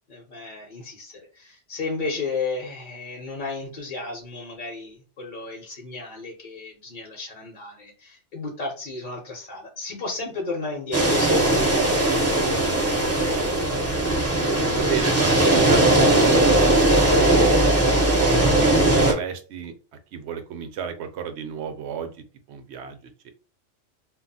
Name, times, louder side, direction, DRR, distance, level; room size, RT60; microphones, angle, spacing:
voice 1, 0.1-12.7, left 3 dB, 50° left, -1 dB, 0.8 m, -34 dB
sound 1, 10.9-19.1, right 1 dB, 20° right, 0.5 m, -19 dB
voice 2, 14.7-17.6 18.1-19.7 20.1-22.1 22.5-23.3, right 7 dB, 70° right, 7 dB, 0.8 m, -32 dB
2.3 x 2.0 x 3.8 m, 0.36 s
omnidirectional pair, 1.2 m